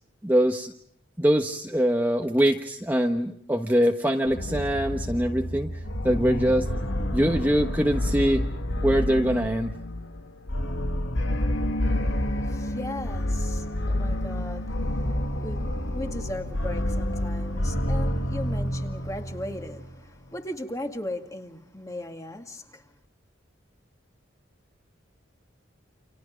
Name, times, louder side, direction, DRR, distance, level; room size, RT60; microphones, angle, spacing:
voice 1, 0.2-0.7 1.2-5.7 6.0-6.7 7.1-8.4 8.8-9.7, equal, 10° right, 1.2 m, -23 dB
sound 1, 4.3-19.9, left 1 dB, 90° left, 2.3 m, -29 dB
voice 2, 11.8-22.8, left 1 dB, 15° left, 2.2 m, -38 dB
29.5 x 27.5 x 5.2 m
head